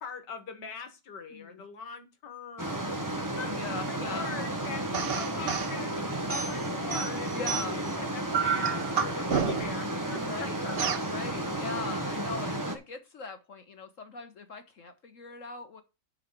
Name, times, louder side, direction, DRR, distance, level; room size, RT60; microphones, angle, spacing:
voice 1, 0.0-3.5 3.9-4.9 5.1-6.0 6.3-10.9, left 5 dB, 80° left, 8 dB, 2.2 m, -42 dB
voice 2, 1.3-1.6 3.4-4.2 7.3-7.8 10.3-10.6 11.1-15.8, left 4 dB, 50° left, 9 dB, 1.3 m, -40 dB
sound 1, 2.6-12.8, right 1 dB, 15° right, 1.0 m, -33 dB
sound 2, 4.9-5.7 6.3-7.9 8.3-9.8 10.8-11.1, right 7 dB, 50° right, 0.8 m, -30 dB
8.0 x 5.8 x 5.8 m, 0.29 s
omnidirectional pair, 1.8 m